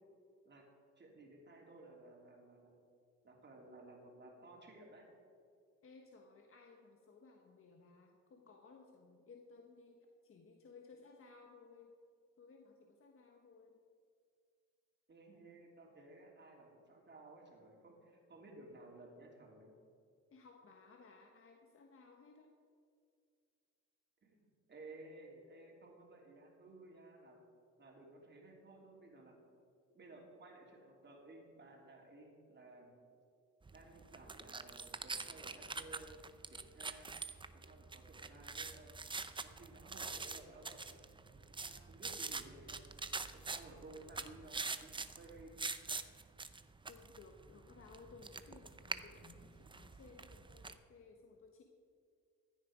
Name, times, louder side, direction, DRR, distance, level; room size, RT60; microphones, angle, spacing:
voice 1, 1.0-2.7 3.2-5.1 15.1-19.7 24.2-27.4 27.8-29.3 29.9-33.0 33.7-36.2 36.5-37.2 37.5-39.0 39.4-41.0 41.3-42.8 43.3-45.6, right 2 dB, 35° right, -1 dB, 3.3 m, -57 dB
voice 2, 5.8-11.9 12.4-13.8 20.3-22.5 46.9-51.6, left 4 dB, 45° left, 2 dB, 1.3 m, -59 dB
sound 1, 33.7-50.7, right 4 dB, 15° right, 0.6 m, -45 dB
15.5 x 9.9 x 4.9 m, 2.3 s
cardioid pair, 90°, 30 cm